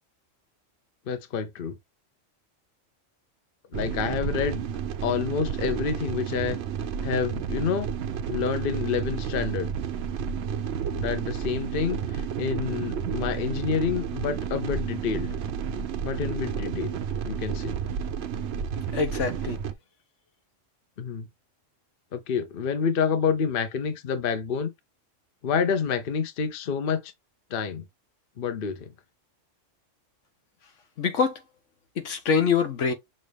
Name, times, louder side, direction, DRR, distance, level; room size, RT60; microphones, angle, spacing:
voice 1, 1.1-1.7 3.7-4.6 5.0-6.6 7.0-7.9 8.3-9.7 10.9-15.3 16.0-17.0 17.3-17.8 21.0-21.3 22.1-24.7 25.4-27.1 27.5-27.8 28.4-28.9, left 6 dB, 50° left, 0.9 m, -28 dB
sound 1, 3.7-19.7, right 7 dB, 65° right, 0.8 m, -31 dB
voice 2, 18.9-19.6 31.0-31.4 32.0-32.9, left 6 dB, 75° left, 1.3 m, -24 dB
6.3 x 2.5 x 3.4 m
omnidirectional pair, 1.3 m